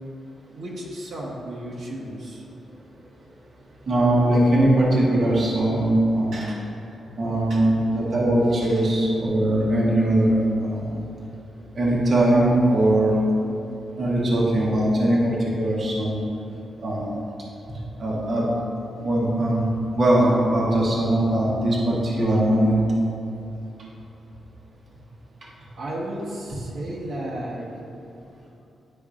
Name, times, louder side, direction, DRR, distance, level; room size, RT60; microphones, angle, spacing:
voice 1, 0.5-2.4 6.3-6.7 7.5-7.7 8.5-8.9 25.7-27.7, right 1 dB, 65° right, -5 dB, 1.0 m, -34 dB
voice 2, 3.9-6.4 7.2-10.9 11.7-13.2 14.0-16.2 16.8-17.2 17.7-18.5 19.0-22.8, right 1 dB, 40° right, -5 dB, 1.0 m, -21 dB
9.8 x 5.2 x 2.5 m, 2.9 s
wide cardioid pair, 165°, 0 cm